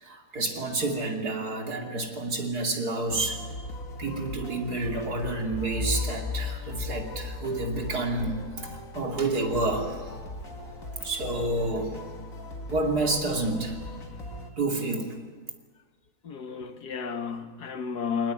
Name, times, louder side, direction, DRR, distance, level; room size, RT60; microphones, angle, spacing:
voice 1, 0.0-3.4 4.0-10.1 11.0-12.0 12.7-13.8 14.6-15.1, right 2 dB, 70° right, 3 dB, 3.2 m, -29 dB
sound 1, 3.1-14.5, left 1 dB, 55° left, 2.5 m, -40 dB
sound 2, 5.5-8.3, left 4 dB, 10° right, 3.3 m, -34 dB
voice 2, 16.2-18.3, left 6 dB, 80° left, 8 dB, 2.0 m, -32 dB
24.0 x 19.5 x 9.0 m, 1.5 s
omnidirectional pair, 1.7 m